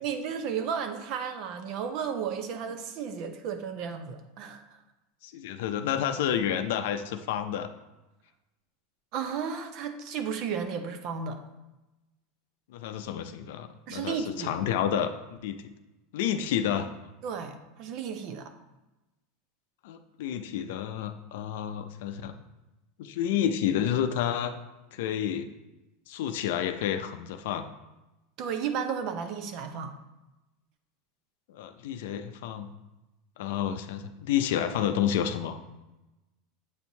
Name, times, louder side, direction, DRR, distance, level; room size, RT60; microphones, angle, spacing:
voice 1, 0.0-4.6 9.1-11.4 13.9-14.6 17.2-18.5 28.4-29.9, right 7 dB, 45° right, 7 dB, 0.6 m, -33 dB
voice 2, 5.2-7.7 12.7-15.1 15.4-15.6 16.1-16.9 19.8-22.4 23.0-24.5 24.9-25.5 26.1-27.7 31.5-32.7 33.4-35.6, left 9 dB, 70° left, 8 dB, 0.5 m, -30 dB
7.9 x 4.4 x 2.8 m, 1.0 s
supercardioid pair, 150°, 0 cm